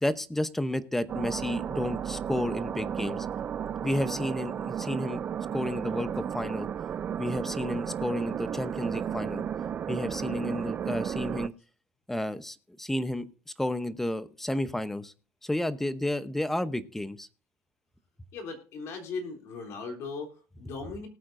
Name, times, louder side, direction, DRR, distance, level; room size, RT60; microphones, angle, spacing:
voice 1, 0.0-3.3 3.8-5.2 5.5-6.7 7.2-9.4 9.9-11.5 12.1-13.2 13.6-15.1 15.4-17.3, left 1 dB, 5° left, 13 dB, 0.8 m, -31 dB
sound 1, 1.1-11.5, right 8 dB, 30° right, 0.4 m, -33 dB
voice 2, 18.3-21.1, left 4 dB, 55° left, 3 dB, 3.4 m, -38 dB
19.0 x 8.5 x 2.7 m, 0.37 s
cardioid pair, 120°, 6 cm